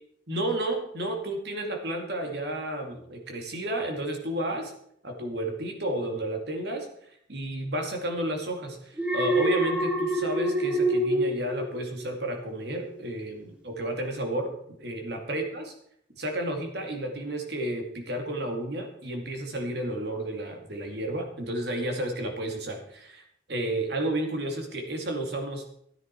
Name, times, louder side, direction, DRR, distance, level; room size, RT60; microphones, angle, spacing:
voice 1, 0.3-4.7 5.0-6.9 7.3-15.7 16.2-23.2 23.5-25.7, right 1 dB, 65° right, 3 dB, 2.5 m, -32 dB
Alarm, 9.0-12.3 12.7-13.0, right 1 dB, 5° right, 1.9 m, -26 dB
13.5 x 10.0 x 4.7 m, 0.69 s
head